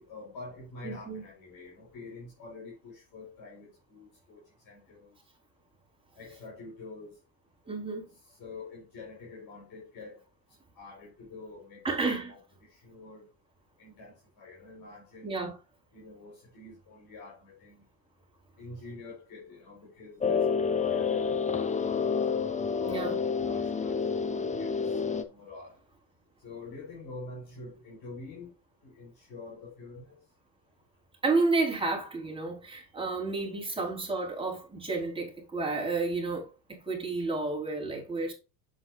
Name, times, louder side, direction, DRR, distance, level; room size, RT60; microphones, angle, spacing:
voice 1, 0.0-5.1 6.2-7.2 8.4-10.2 10.7-13.3 13.8-15.4 15.9-17.8 18.6-22.1 22.8-24.9 25.3-25.8 26.4-28.5 28.8-30.2, left 3 dB, 50° left, 4.6 m, -46 dB
voice 2, 0.8-1.2 7.7-8.1 11.8-12.3 15.2-15.5 22.9-23.2 31.2-38.3, right 3 dB, 10° right, 4.4 m, -31 dB
sound 1, 20.2-25.2, left 6 dB, 15° left, 1.0 m, -29 dB
8.0 x 7.7 x 2.6 m
hypercardioid pair, 90°, 47 cm